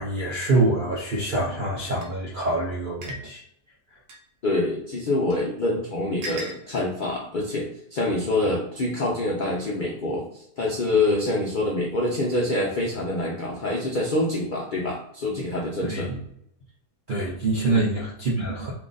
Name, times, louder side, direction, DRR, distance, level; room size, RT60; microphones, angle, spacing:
voice 1, 0.0-3.4 15.8-16.2 17.1-18.7, right 2 dB, 65° right, -4 dB, 0.5 m, -25 dB
sound 1, 2.0-2.1 3.0-3.2 4.1-4.2 5.3-5.4 6.2-6.6, equal, 80° right, 1.4 m, -35 dB
voice 2, 4.4-16.1 17.7-17.8, left 2 dB, 85° left, -2 dB, 0.4 m, -26 dB
2.8 x 2.5 x 3.8 m, 0.74 s
omnidirectional pair, 1.6 m